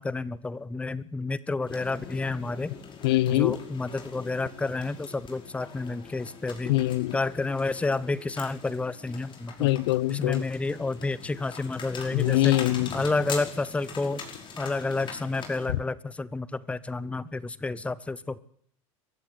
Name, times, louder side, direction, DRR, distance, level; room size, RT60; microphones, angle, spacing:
voice 1, 0.0-2.7 3.3-6.7 7.1-9.7 10.1-12.5 12.9-14.2 14.6-18.4, left 3 dB, 10° left, 0.9 m, -30 dB
sound 1, 1.7-15.7, left 5 dB, 30° left, 5.3 m, -42 dB
voice 2, 3.0-3.6 6.7-7.2 9.6-10.4 12.1-13.0, left 17 dB, 55° left, 0.9 m, -23 dB
23.0 x 14.5 x 9.5 m
figure-of-eight pair, 80°, 16 cm